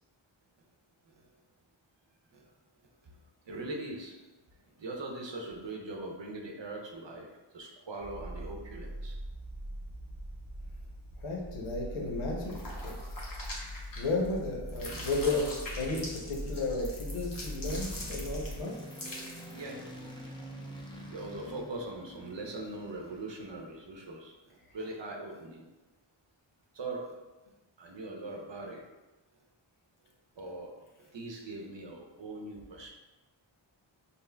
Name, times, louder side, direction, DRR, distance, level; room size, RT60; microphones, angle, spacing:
voice 1, 3.5-4.1 4.8-7.3 7.5-9.1 19.5-19.8 21.1-24.3 24.7-25.7 26.7-27.1 27.8-28.8 30.4-30.7 31.0-32.9, right 2 dB, 60° right, 0 dB, 0.8 m, -41 dB
sound 1, 8.0-18.6, equal, 35° right, 0.8 m, -42 dB
voice 2, 11.2-13.0 14.0-18.7, left 2 dB, 85° left, -1 dB, 0.8 m, -33 dB
sound 2, 12.4-14.4 14.7-19.6, left 1 dB, 45° left, 0.9 m, -43 dB
sound 3, 15.6-23.7, equal, 10° left, 0.6 m, -48 dB
5.4 x 2.1 x 2.2 m, 1.1 s
wide cardioid pair, 40°, 49 cm